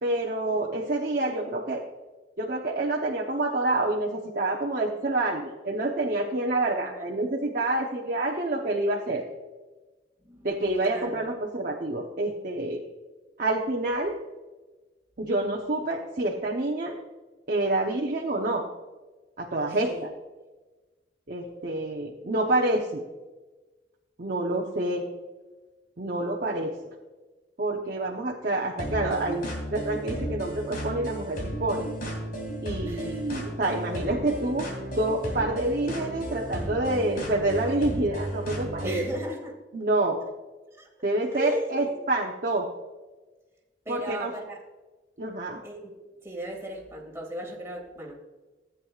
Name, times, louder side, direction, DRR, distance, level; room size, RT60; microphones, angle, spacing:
voice 1, 0.0-1.8 2.4-9.2 10.4-12.8 13.4-14.2 15.2-17.0 17.5-18.7 19.4-19.9 21.3-23.0 24.2-25.1 26.0-26.8 27.6-31.9 32.6-34.7 35.0-39.0 39.7-40.2 41.0-42.7 43.9-44.3 45.2-45.6, right 2 dB, 50° right, -1 dB, 0.9 m, -27 dB
voice 2, 10.2-10.5 10.8-11.2 19.8-20.1 32.8-33.3 38.8-39.6 40.7-40.9 41.3-42.0 43.8-44.6 45.6-48.1, right 1 dB, 15° right, -2 dB, 2.3 m, -36 dB
sound 1, 28.8-39.1, right 1 dB, 55° left, 2.7 m, -34 dB
14.0 x 8.9 x 2.4 m, 1.2 s
head